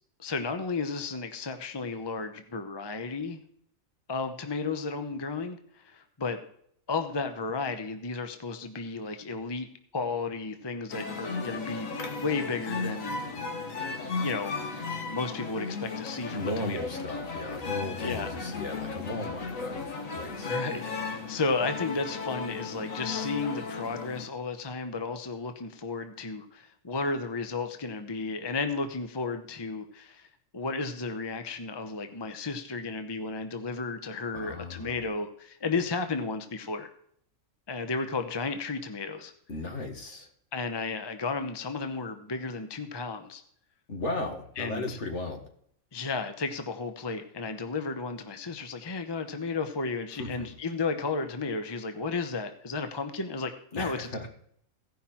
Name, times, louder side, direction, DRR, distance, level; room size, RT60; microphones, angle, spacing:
voice 1, 0.2-3.4 4.1-6.4 6.9-9.7 9.9-13.2 14.2-17.1 18.0-18.3 20.4-30.3 30.5-36.9 37.7-39.3 40.5-43.4 44.6-45.0 45.9-54.3, left 4 dB, 25° left, 7 dB, 0.8 m, -33 dB
sound 1, 10.9-24.3, left 4 dB, 85° left, 1.7 m, -35 dB
voice 2, 16.3-19.9 20.1-20.5 34.3-35.0 39.5-40.3 43.9-45.4 50.2-50.5 53.7-54.3, left 2 dB, 65° left, 3 dB, 2.0 m, -35 dB
16.0 x 5.7 x 4.3 m, 0.67 s
omnidirectional pair, 1.3 m